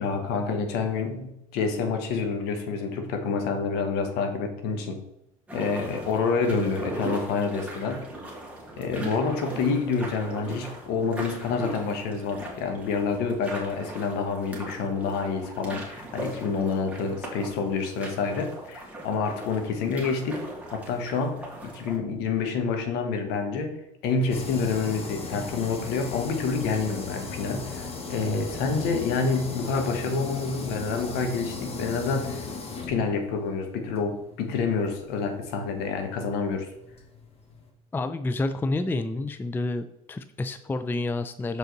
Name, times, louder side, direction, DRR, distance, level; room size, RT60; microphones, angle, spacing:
voice 1, 0.0-5.0 5.5-8.1 8.8-20.4 20.7-23.8 24.0-32.5 32.9-36.7, left 4 dB, 65° left, 5 dB, 1.3 m, -28 dB
sound 1, 5.5-22.0, right 1 dB, 5° right, 2.0 m, -39 dB
sound 2, 24.3-37.7, left 4 dB, 35° left, 1.5 m, -38 dB
voice 2, 37.9-41.6, left 2 dB, 10° left, 11 dB, 0.4 m, -29 dB
6.4 x 5.1 x 3.9 m, 0.83 s
hypercardioid pair, 75°, 18 cm